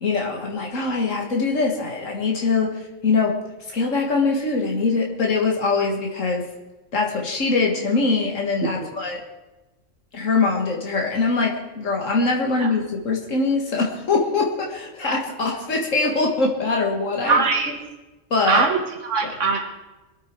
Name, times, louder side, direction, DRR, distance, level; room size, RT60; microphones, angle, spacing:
voice 1, 0.0-3.4 3.7-6.5 6.9-9.2 10.1-17.5 18.3-18.6 19.2-19.3, left 3 dB, 85° left, 0 dB, 2.2 m, -23 dB
voice 2, 17.2-17.7 18.5-19.7, right 4 dB, 75° right, 4 dB, 1.7 m, -21 dB
25.0 x 8.8 x 4.6 m, 1.1 s
omnidirectional pair, 1.3 m